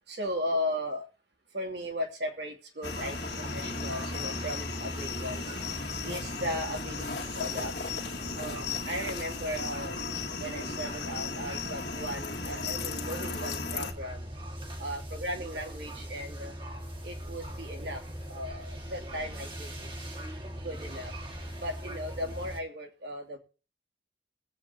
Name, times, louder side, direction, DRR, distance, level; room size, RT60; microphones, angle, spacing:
voice 1, 0.1-1.1 1.5-7.7 8.3-10.0 10.4-14.3 14.8-16.6 17.0-20.2 20.6-21.1 21.6-23.4, equal, 75° right, 1 dB, 2.8 m, -37 dB
sound 1, 2.8-13.9, left 4 dB, 70° left, 2.0 m, -36 dB
sound 2, 2.8-22.6, right 1 dB, 30° right, 1.9 m, -41 dB
22.5 x 8.2 x 2.9 m, 0.35 s
head